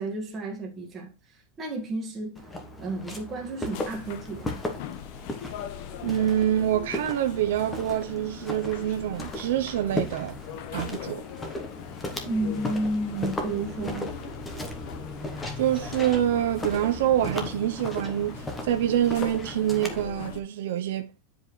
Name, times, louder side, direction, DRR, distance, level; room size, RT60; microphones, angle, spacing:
voice 1, 0.0-2.4 2.8-4.6 12.2-14.1, right 2 dB, 15° right, 1.6 m, -32 dB
Walk footsteps, 2.4-20.1, left 1 dB, 10° left, 1.0 m, -36 dB
sound 1, 3.7-20.4, left 10 dB, 45° left, 0.7 m, -41 dB
voice 2, 6.0-10.4 10.7-11.3 15.6-21.1, right 11 dB, 70° right, 0.6 m, -26 dB
9.9 x 5.1 x 3.2 m
supercardioid pair, 180°, 0 cm